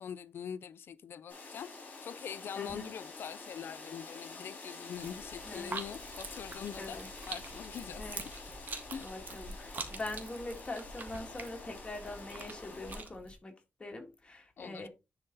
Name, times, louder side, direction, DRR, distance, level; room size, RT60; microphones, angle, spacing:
voice 1, 0.0-1.7 2.0-7.0 7.3-8.1 8.9-9.1 14.6-14.9, left 8 dB, 90° left, 0.5 m, -43 dB
sound 1, 1.3-13.0, left 3 dB, 45° left, 3.7 m, -48 dB
voice 2, 2.6-2.9 5.4-5.7 6.8-7.1 8.0-8.3 8.9-13.5 13.8-14.9, left 2 dB, 30° left, 1.8 m, -43 dB
sound 2, 4.9-13.3, right 3 dB, 50° right, 1.7 m, -45 dB
10.5 x 4.2 x 4.0 m
wide cardioid pair, 120°, 4 cm